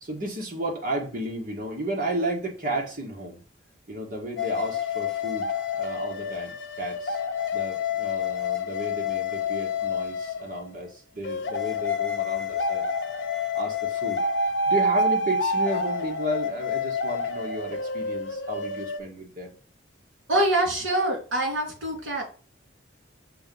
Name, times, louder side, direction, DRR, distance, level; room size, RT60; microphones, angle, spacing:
voice 1, 0.0-3.4 3.9-7.2 7.5-12.9 13.5-14.2 14.7-19.6, right 1 dB, 40° right, 1 dB, 1.5 m, -33 dB
sound 1, 4.4-10.7 11.2-19.0, left 3 dB, 65° left, 0.6 m, -28 dB
voice 2, 20.3-22.3, right 1 dB, 70° right, -1 dB, 3.0 m, -25 dB
6.8 x 2.9 x 5.3 m, 0.38 s
head